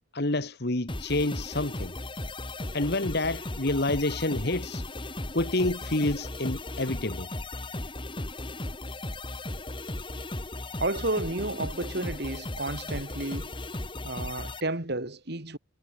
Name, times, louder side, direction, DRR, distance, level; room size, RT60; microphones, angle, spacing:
voice 1, 0.1-1.9 2.7-4.9 5.3-7.3, left 2 dB, 50° left, 1.6 m, -28 dB
sound 1, 0.9-14.6, left 1 dB, 25° left, 2.1 m, -36 dB
voice 2, 10.8-13.5 14.0-15.6, right 2 dB, 50° right, 2.5 m, -32 dB
head